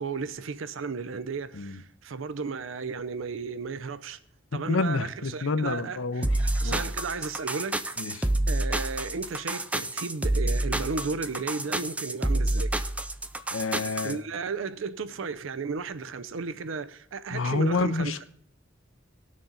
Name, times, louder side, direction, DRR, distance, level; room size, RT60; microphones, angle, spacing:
voice 1, 0.0-4.2 4.5-12.7 14.0-18.1, right 4 dB, 75° right, 0.5 m, -34 dB
voice 2, 4.7-6.3 6.6-6.8 8.0-8.3 13.5-14.2 17.3-18.2, left 3 dB, 85° left, 0.7 m, -28 dB
sound 1, 6.2-14.1, right 1 dB, 5° right, 0.5 m, -28 dB
19.0 x 6.5 x 3.9 m
head